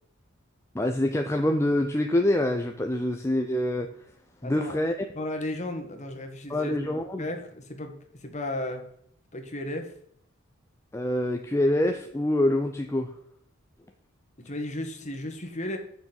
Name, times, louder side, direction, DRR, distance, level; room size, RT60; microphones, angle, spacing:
voice 1, 0.7-3.9 4.4-4.9 6.5-7.3 10.9-13.1, left 1 dB, 15° left, 4 dB, 0.5 m, -25 dB
voice 2, 4.4-4.8 5.1-6.7 7.2-8.8 9.3-9.9 14.4-15.8, left 1 dB, 35° left, 4 dB, 1.6 m, -34 dB
8.5 x 6.3 x 5.2 m, 0.69 s
head